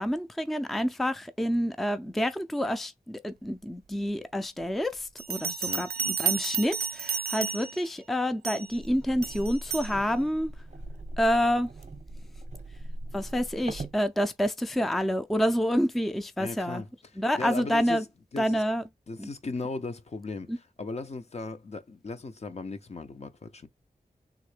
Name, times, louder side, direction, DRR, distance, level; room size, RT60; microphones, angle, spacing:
voice 1, 0.0-5.9 6.2-10.5 11.2-11.7 13.1-16.8 17.2-18.0 18.4-18.8 19.2-19.3 20.5-20.6, equal, ahead, 0.4 m, -28 dB
Bell, 5.2-7.9 8.4-8.8 9.2-9.9, right 6 dB, 85° right, 0.4 m, -32 dB
sound 1, 8.7-14.0, right 1 dB, 50° right, 0.7 m, -40 dB
voice 2, 16.4-18.6 19.1-23.7, left 3 dB, 45° left, 0.6 m, -37 dB
3.6 x 2.1 x 3.2 m
cardioid pair, 55°, 15 cm